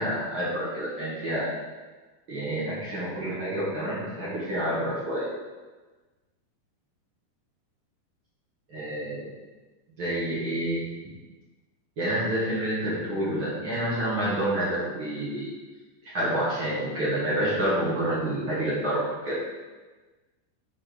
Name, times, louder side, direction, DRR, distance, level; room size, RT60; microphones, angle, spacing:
voice 1, 0.0-1.5 2.3-5.3 8.7-9.3 10.0-10.8 12.0-15.5 16.0-19.3, right 1 dB, 55° right, -8 dB, 1.4 m, -28 dB
8.6 x 4.5 x 5.1 m, 1.3 s
omnidirectional pair, 5.2 m